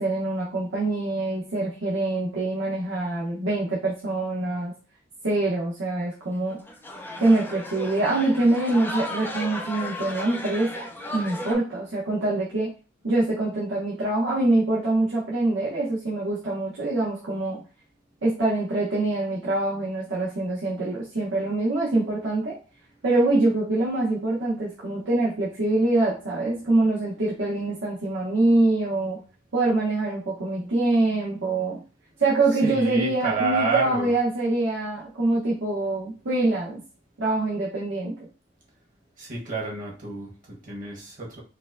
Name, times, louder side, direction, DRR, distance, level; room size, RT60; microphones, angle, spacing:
voice 1, 0.0-4.7 5.2-6.6 7.2-10.9 11.1-12.7 13.0-17.6 18.2-22.6 23.0-29.2 29.5-31.8 32.2-36.8 37.2-38.1, right 2 dB, 85° right, -6 dB, 1.0 m, -24 dB
sound 1, 6.3-11.5, left 1 dB, 10° left, 0.5 m, -35 dB
voice 2, 32.6-34.1 39.2-41.4, right 4 dB, 45° right, -2 dB, 1.0 m, -29 dB
4.6 x 2.3 x 2.5 m, 0.36 s
head